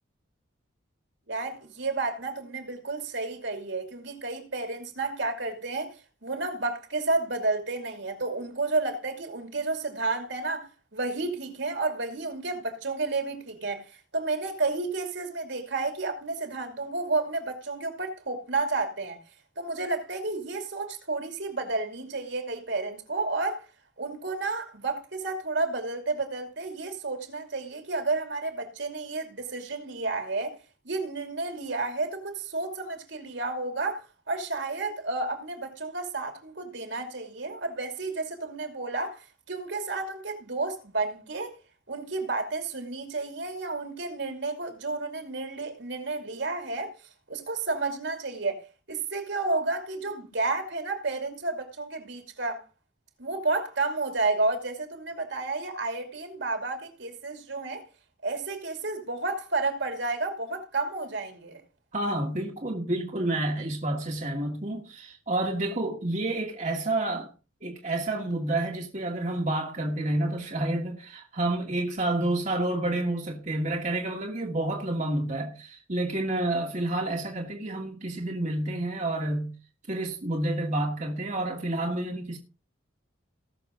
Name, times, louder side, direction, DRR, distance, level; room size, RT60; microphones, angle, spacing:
voice 1, 1.3-19.2 19.6-23.6 24.0-30.6 30.8-41.5 41.9-47.0 47.3-52.6 53.2-57.8 58.2-61.6, right 3 dB, 65° right, 2.7 m, -31 dB
voice 2, 61.9-67.3 67.6-79.5 79.9-82.4, right 1 dB, 35° right, 1.7 m, -29 dB
18.5 x 6.9 x 3.7 m
head